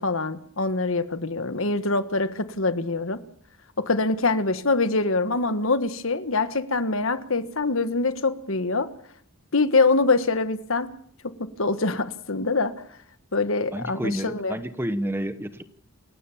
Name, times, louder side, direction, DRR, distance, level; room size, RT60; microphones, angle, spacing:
voice 1, 0.0-3.2 3.8-8.9 9.5-10.9 11.2-12.7 13.3-14.6, left 3 dB, 70° left, 1.5 m, -24 dB
voice 2, 13.7-15.6, right 1 dB, 10° right, 1.0 m, -30 dB
28.5 x 16.0 x 7.3 m
head